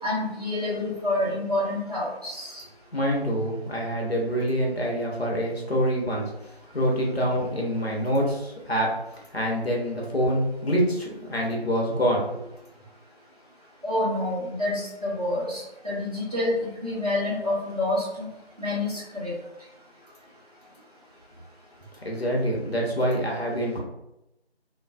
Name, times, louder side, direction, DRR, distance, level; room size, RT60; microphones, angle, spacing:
voice 1, 0.0-2.6 13.8-16.5 16.8-18.3 18.6-19.3, left 1 dB, 40° right, -7 dB, 0.9 m, -28 dB
voice 2, 2.9-8.9 9.3-12.4 22.0-23.8, equal, 70° left, -2 dB, 0.9 m, -26 dB
2.5 x 2.3 x 2.3 m, 0.88 s
figure-of-eight pair, 180°, 32 cm